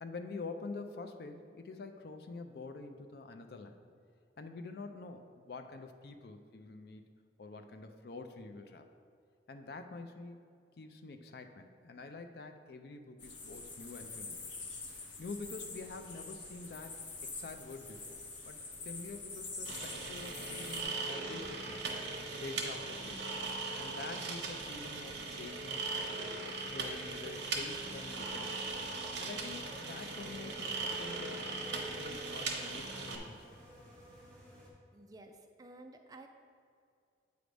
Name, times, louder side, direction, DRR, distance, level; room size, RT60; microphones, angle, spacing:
voice 1, 0.0-3.8 4.4-7.0 7.4-8.9 9.5-10.4 10.8-14.4 15.2-18.2 18.4-18.6 18.8-21.8 22.4-23.3 23.8-25.8 26.2-28.6 29.2-33.5, left 3 dB, 55° left, 7 dB, 0.4 m, -47 dB
sound 1, 13.2-20.8, left 3 dB, 85° left, 1.0 m, -45 dB
sound 2, 19.6-33.2, right 3 dB, 70° right, 0.9 m, -39 dB
sound 3, 27.4-34.7, equal, 5° left, 1.1 m, -55 dB
voice 2, 34.9-36.3, right 2 dB, 20° right, 5 dB, 0.3 m, -53 dB
7.9 x 3.3 x 5.1 m, 2.4 s
head